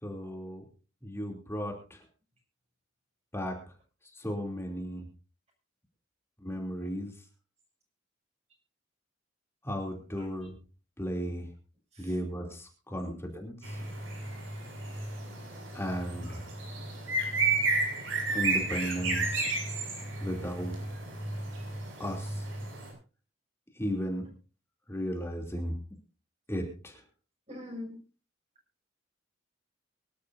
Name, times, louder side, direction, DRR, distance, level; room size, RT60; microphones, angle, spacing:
voice 1, 0.0-0.6 1.0-2.0 3.3-3.6 4.1-5.0 6.4-7.1 9.6-10.5 11.0-11.4 12.0-13.8 15.7-16.4 18.3-19.4 20.2-20.7 22.0-22.4 23.8-24.3 24.9-25.8 26.5-27.0, equal, 15° left, 1 dB, 3.1 m, -35 dB
voice 2, 10.1-10.5 11.9-12.2 13.0-13.1 16.2-16.5 27.5-28.0, left 1 dB, 35° right, 0 dB, 6.8 m, -44 dB
sound 1, 13.6-22.9, right 3 dB, 80° right, 7.3 m, -32 dB
24.0 x 12.0 x 2.7 m, 0.35 s
head